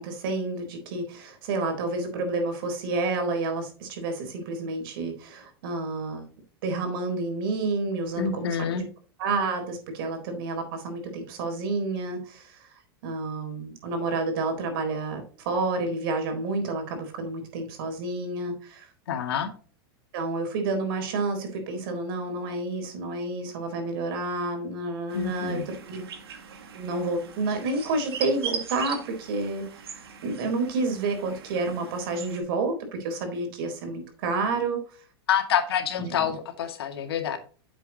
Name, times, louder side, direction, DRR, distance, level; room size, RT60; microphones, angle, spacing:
voice 1, 0.0-6.3 6.6-8.8 9.2-12.7 13.0-18.9 20.1-26.0 26.7-35.0 36.0-36.3, right 3 dB, 65° right, 5 dB, 4.0 m, -30 dB
voice 2, 8.2-8.8 19.1-19.5 25.1-25.7 35.3-37.4, left 8 dB, 80° left, 6 dB, 2.1 m, -27 dB
sound 1, 25.1-32.4, right 6 dB, 85° right, 2.1 m, -40 dB
9.9 x 7.6 x 2.9 m, 0.40 s
hypercardioid pair, 120°, 13 cm